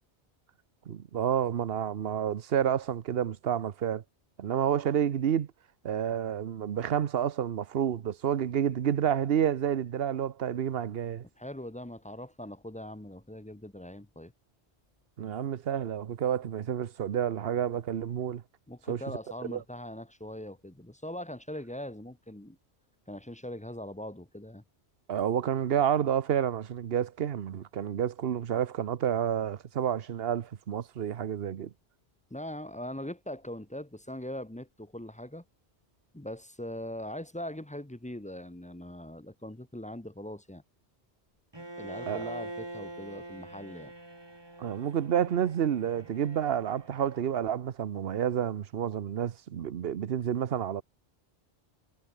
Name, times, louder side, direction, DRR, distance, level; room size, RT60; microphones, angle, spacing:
voice 1, 0.9-4.0 4.4-5.5 5.8-11.2 15.2-18.4 18.9-19.0 19.5-19.6 25.1-31.7 42.1-42.2 44.6-50.8, right 9 dB, 60° right, 1.0 m, -29 dB
voice 2, 11.4-14.3 18.7-22.6 23.1-24.6 32.3-35.4 36.1-40.6 41.8-43.9, left 1 dB, 5° left, 0.8 m, -41 dB
Bowed string instrument, 41.5-47.5, right 1 dB, 20° right, 2.4 m, -44 dB
omnidirectional pair, 1.1 m